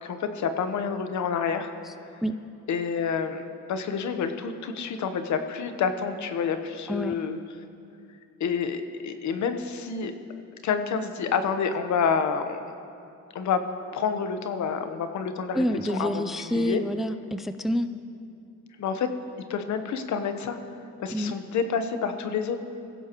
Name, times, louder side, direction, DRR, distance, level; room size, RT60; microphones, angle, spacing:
voice 1, 0.0-1.7 2.7-7.4 8.4-10.1 10.6-12.7 13.3-13.6 13.9-16.8 18.8-19.1 19.5-20.6 21.0-22.6, left 6 dB, 70° left, 8 dB, 1.1 m, -28 dB
voice 2, 15.5-17.9 21.1-21.3, equal, ahead, 10 dB, 0.5 m, -27 dB
20.5 x 16.0 x 3.1 m, 2.5 s
cardioid pair, 90°, 30 cm